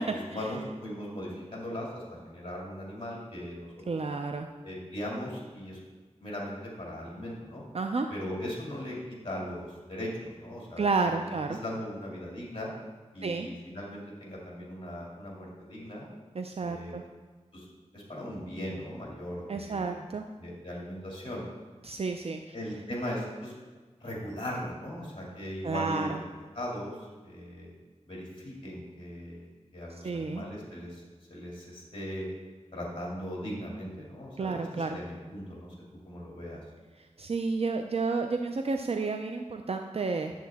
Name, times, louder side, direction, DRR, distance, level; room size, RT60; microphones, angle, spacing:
voice 1, 0.3-3.7 4.6-5.8 6.2-7.6 8.1-12.7 13.1-16.1 16.6-17.0 17.5-17.7 17.9-20.0 20.4-21.4 22.5-23.5 24.0-26.2 26.5-27.7 28.1-31.0 31.3-32.3 32.7-35.7 36.0-36.6, left 1 dB, 45° left, -4 dB, 2.3 m, -38 dB
voice 2, 3.9-4.5 7.7-8.1 10.8-11.6 13.2-13.5 16.3-17.0 19.5-20.2 21.8-22.5 25.6-26.1 30.0-30.5 34.4-35.0 37.2-40.3, right 4 dB, 55° right, 5 dB, 0.4 m, -31 dB
10.5 x 7.4 x 3.5 m, 1.4 s
wide cardioid pair, 80°, 12 cm